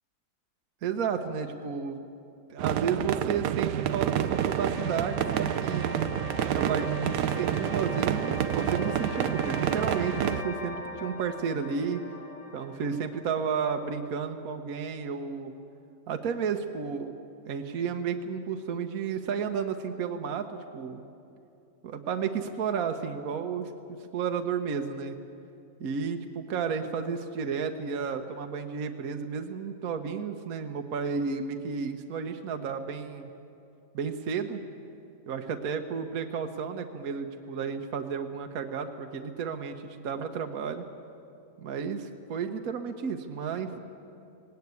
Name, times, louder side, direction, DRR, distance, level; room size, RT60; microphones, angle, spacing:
voice 1, 0.8-2.0 2.5-6.1 6.5-12.0 12.5-15.5 16.1-17.1 17.5-21.0 21.8-23.7 24.1-25.2 25.8-33.3 33.9-34.6 35.3-39.7 40.0-40.8 41.6-43.8, right 6 dB, 65° right, 5 dB, 1.3 m, -32 dB
sound 1, 2.6-10.4, right 11 dB, 85° right, 1.3 m, -29 dB
sound 2, 3.1-14.1, left 2 dB, 50° left, 2.2 m, -40 dB
18.5 x 17.5 x 9.5 m, 2.6 s
omnidirectional pair, 1.7 m